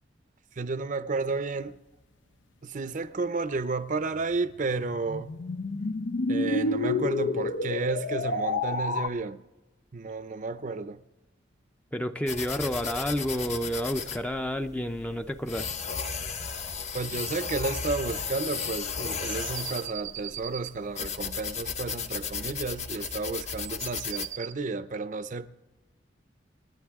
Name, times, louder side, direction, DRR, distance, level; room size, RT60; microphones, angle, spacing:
voice 1, 0.6-1.8 2.6-5.3 6.3-9.4 9.9-11.0 16.9-25.5, right 3 dB, 45° right, 0.6 m, -32 dB
sound 1, 4.1-9.1, left 2 dB, 85° left, 0.7 m, -29 dB
voice 2, 11.9-15.7, equal, 5° left, 0.5 m, -30 dB
sound 2, 12.3-24.3, left 6 dB, 40° left, 0.8 m, -35 dB
sound 3, 19.0-20.8 22.2-24.5, right 12 dB, 85° right, 0.7 m, -40 dB
27.5 x 10.5 x 3.6 m
head